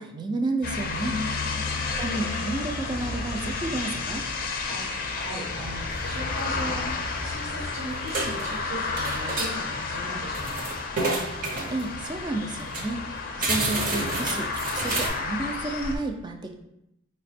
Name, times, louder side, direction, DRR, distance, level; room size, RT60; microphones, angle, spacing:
voice 1, 0.0-1.1 1.9-4.2 11.7-13.0 13.4-16.5, right 2 dB, 20° right, 4 dB, 0.4 m, -31 dB
sound 1, 0.6-16.0, left 4 dB, 45° left, 0.5 m, -32 dB
sound 2, 1.0-7.3, left 1 dB, 65° right, 1.0 m, -40 dB
voice 2, 1.1-1.8 4.7-6.9 7.2-10.7, equal, 85° right, -4 dB, 1.0 m, -38 dB
sound 3, 5.9-6.0 6.3-6.4 7.1-7.7 7.9-8.7 9.0-9.6 10.1-11.9 12.3-12.4 12.6-12.9 13.4-15.1, right 2 dB, 40° right, 0.7 m, -29 dB
4.9 x 2.1 x 4.2 m, 0.82 s
head